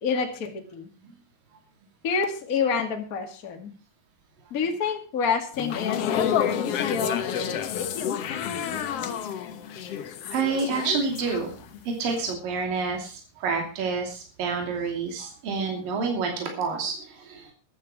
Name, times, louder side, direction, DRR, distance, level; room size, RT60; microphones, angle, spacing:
voice 1, 0.0-0.9 2.0-3.7 4.5-7.2, left 5 dB, 35° left, 4 dB, 1.7 m, -28 dB
sound 1, 5.5-11.8 12.1-12.3, left 8 dB, 70° left, 1.5 m, -29 dB
voice 2, 10.3-11.6 12.0-17.5, right 5 dB, 65° right, 2 dB, 4.4 m, -28 dB
14.0 x 11.5 x 4.8 m, 0.36 s
omnidirectional pair, 4.3 m